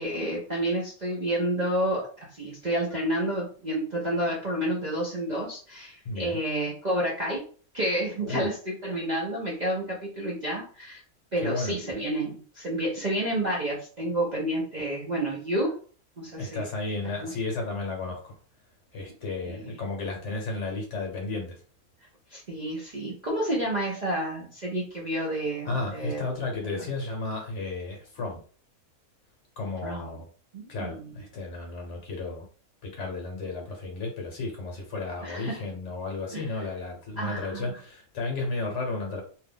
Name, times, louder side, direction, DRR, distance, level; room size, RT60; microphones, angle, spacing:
voice 1, 0.0-7.4 7.7-11.0 11.3-15.7 16.2-16.7 17.2-17.3 19.4-19.8 22.3-26.2 26.8-26.9 29.8-30.1 30.5-31.2 35.2-35.6 36.3-36.6 37.2-37.8, right 1 dB, 45° right, -4 dB, 0.6 m, -30 dB
voice 2, 6.0-6.4 8.2-8.5 11.4-11.7 16.4-18.4 18.9-21.6 25.6-28.4 29.6-30.2 30.7-32.4 32.8-39.2, left 3 dB, 55° left, 1 dB, 1.1 m, -33 dB
2.8 x 2.4 x 3.6 m, 0.42 s
omnidirectional pair, 1.6 m